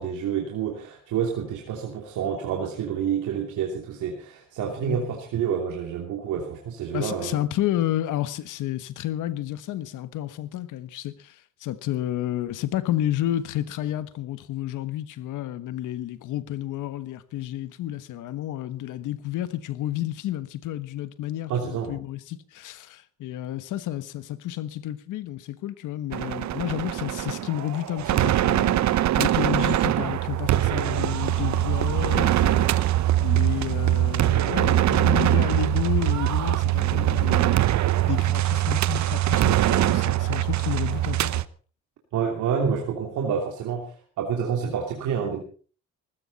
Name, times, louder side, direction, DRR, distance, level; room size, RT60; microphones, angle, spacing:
voice 1, 0.0-7.4 21.5-21.9 42.1-43.9 44.2-45.4, right 7 dB, 85° right, 3.0 m, -28 dB
voice 2, 6.9-28.8 29.2-32.9 33.2-37.6 38.1-41.4, left 13 dB, 85° left, 1.3 m, -31 dB
sound 1, 26.1-41.4, right 13 dB, 65° right, 0.9 m, -23 dB
19.0 x 16.0 x 4.2 m
cardioid pair, 90°, 30 cm